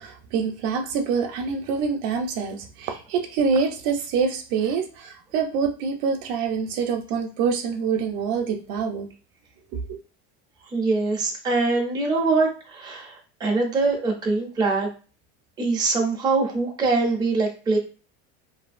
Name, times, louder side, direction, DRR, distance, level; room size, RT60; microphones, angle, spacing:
voice 1, 0.0-9.1 9.9-10.0, right 5 dB, 60° right, 4 dB, 0.6 m, -26 dB
voice 2, 10.7-14.9 15.6-17.8, right 3 dB, 15° right, 0 dB, 0.5 m, -23 dB
2.7 x 2.5 x 2.4 m, 0.36 s
cardioid pair, 150°, 33 cm